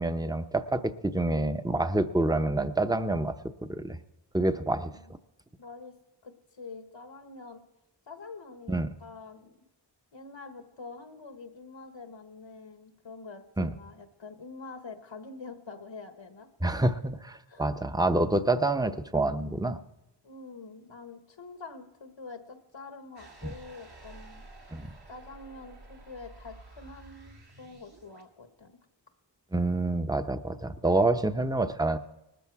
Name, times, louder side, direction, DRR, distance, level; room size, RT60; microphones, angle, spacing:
voice 1, 0.0-3.4 3.7-4.0 4.3-4.9 8.7-8.9 13.6-13.7 16.6-19.8 23.4-23.5 24.7-24.9 29.5-32.0, right 2 dB, 10° right, 9 dB, 0.7 m, -27 dB
voice 2, 4.5-5.0 5.6-5.9 6.2-7.6 8.1-9.6 10.1-16.5 17.5-17.7 20.2-24.4 25.1-28.8, left 4 dB, 85° left, 7 dB, 1.4 m, -46 dB
sound 1, 23.2-28.3, right 2 dB, 60° right, 2.2 m, -51 dB
19.5 x 13.0 x 4.7 m, 0.92 s
wide cardioid pair, 60°, 44 cm